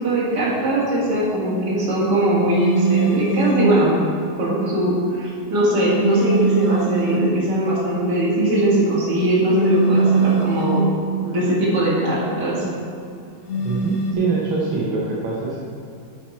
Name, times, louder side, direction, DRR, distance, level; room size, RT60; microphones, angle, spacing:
voice 1, 0.0-4.0 4.4-10.9 11.2-12.6, right 1 dB, 50° right, -7 dB, 2.6 m, -20 dB
sound 1, 2.5-3.8 6.0-7.4 9.5-11.0 13.5-14.1, right 3 dB, 65° left, 0.8 m, -21 dB
voice 2, 13.6-15.6, right 3 dB, 75° right, -5 dB, 1.9 m, -24 dB
9.9 x 5.8 x 4.3 m, 2.5 s
omnidirectional pair, 2.3 m